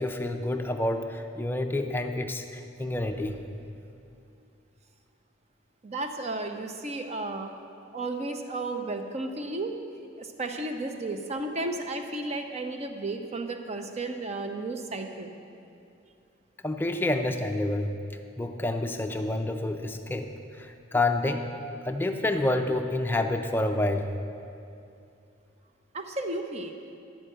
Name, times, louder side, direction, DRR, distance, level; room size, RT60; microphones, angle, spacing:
voice 1, 0.0-3.4 16.6-17.9 18.4-20.3 20.6-21.4 21.9-24.1, left 2 dB, 10° left, 5 dB, 0.4 m, -28 dB
voice 2, 5.8-7.5 7.9-9.8 10.2-15.3 25.9-26.8, right 2 dB, 35° right, 5 dB, 0.6 m, -33 dB
11.5 x 4.5 x 7.7 m, 2.6 s
head